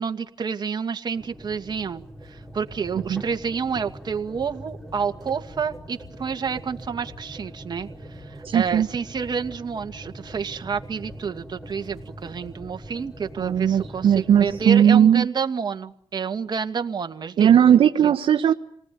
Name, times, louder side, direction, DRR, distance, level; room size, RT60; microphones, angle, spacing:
voice 1, 0.0-17.5 18.0-18.1, right 6 dB, 45° right, 6 dB, 2.3 m, -29 dB
sound 1, 1.2-14.7, right 1 dB, ahead, 4.6 m, -42 dB
voice 2, 8.4-8.9 13.4-15.3 17.4-18.5, right 9 dB, 70° right, 4 dB, 1.3 m, -17 dB
28.0 x 19.5 x 9.5 m, 0.66 s
cardioid pair, 80°, 10 cm